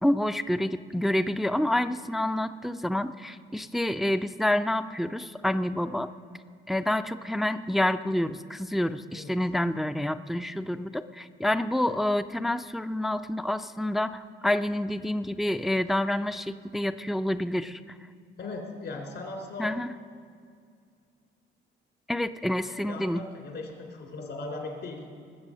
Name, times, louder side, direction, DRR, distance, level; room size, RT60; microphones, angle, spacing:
voice 1, 0.0-6.1 6.7-17.8 19.6-19.9 22.1-23.2, left 1 dB, ahead, 11 dB, 0.4 m, -28 dB
voice 2, 18.4-19.7 22.7-25.1, left 3 dB, 65° left, 1 dB, 3.3 m, -38 dB
20.5 x 7.5 x 6.3 m, 2.2 s
cardioid pair, 90°, 20 cm